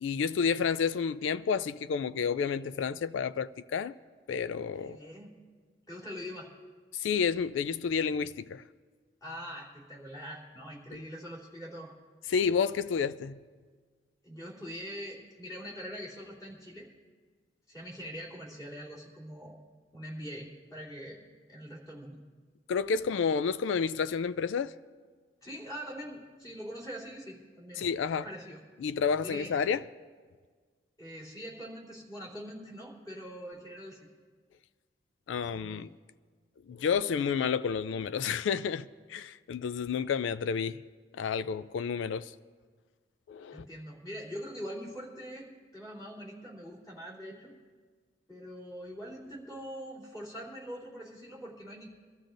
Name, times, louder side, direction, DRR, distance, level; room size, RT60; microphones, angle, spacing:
voice 1, 0.0-3.9 4.3-5.0 6.9-8.6 12.3-13.4 22.7-24.7 27.8-28.2 28.8-29.8 35.3-35.9 36.7-40.8 41.1-42.3 43.3-43.6, left 6 dB, 80° left, 0.3 m, -30 dB
voice 2, 4.8-5.3 5.9-6.5 9.2-11.9 14.2-16.9 17.7-19.6 19.9-21.2 21.5-22.1 25.4-27.8 28.1-28.6 29.2-29.5 31.0-34.0 35.4-35.9 43.5-47.5 48.3-51.9, equal, 20° left, 3.1 m, -43 dB
24.0 x 13.0 x 2.6 m
head